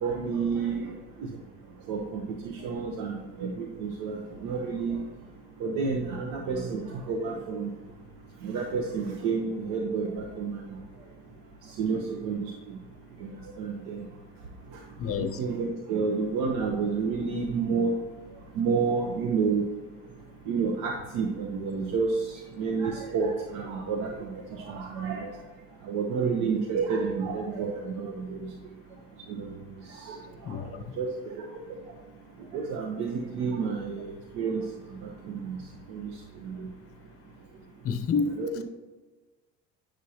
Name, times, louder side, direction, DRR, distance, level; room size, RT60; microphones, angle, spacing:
voice 1, 0.0-0.9 1.9-5.0 5.6-7.7 8.4-10.8 11.8-12.5 13.2-14.0 15.1-17.9 18.6-19.6 20.5-25.3 25.9-28.5 29.3-29.5 30.0-30.2 31.0-31.4 32.5-34.6 35.3-35.6 35.9-36.1 36.4-36.7 38.4-38.6, right 5 dB, 85° right, 1 dB, 1.1 m, -30 dB
voice 2, 15.0-15.4 30.4-30.7 37.8-38.6, left 5 dB, 45° left, 8 dB, 0.8 m, -29 dB
10.0 x 6.3 x 2.9 m, 1.2 s
supercardioid pair, 100°, 32 cm